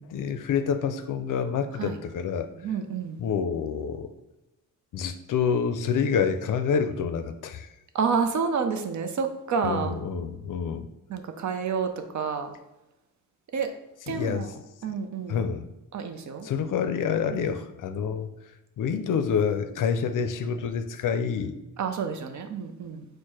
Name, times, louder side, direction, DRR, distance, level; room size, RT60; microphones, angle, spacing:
voice 1, 0.0-2.5 3.2-4.1 4.9-7.7 9.6-10.9 14.1-14.5 15.3-15.7 16.4-18.3 18.8-21.6, left 6 dB, 65° left, 9 dB, 0.5 m, -27 dB
voice 2, 2.6-3.2 7.9-10.0 11.1-12.5 13.5-13.7 14.1-14.5 14.8-15.4 15.9-16.5 17.3-17.4 21.8-23.1, right 5 dB, 55° right, 7 dB, 0.6 m, -29 dB
4.4 x 2.2 x 4.7 m, 0.98 s
wide cardioid pair, 125°, 35 cm